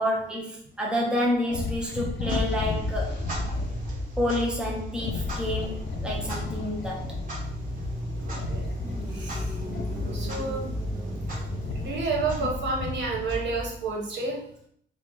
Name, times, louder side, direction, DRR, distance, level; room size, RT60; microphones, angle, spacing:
voice 1, 0.0-3.2 4.2-7.0 11.0-11.1, left 1 dB, 5° right, -3 dB, 0.8 m, -29 dB
sound 1, 1.5-3.8 5.0-7.3 8.3-10.6 11.2-13.6, left 4 dB, 70° left, 0.6 m, -35 dB
Clock, 2.1-14.1, left 1 dB, 50° right, 1.6 m, -34 dB
sound 2, 4.9-11.9, right 1 dB, 20° right, 1.4 m, -41 dB
voice 2, 8.2-8.7 9.1-9.6 9.9-10.7 11.7-14.4, right 3 dB, 75° right, -2 dB, 1.3 m, -30 dB
4.3 x 2.4 x 4.7 m, 0.66 s
wide cardioid pair, 175°, 18 cm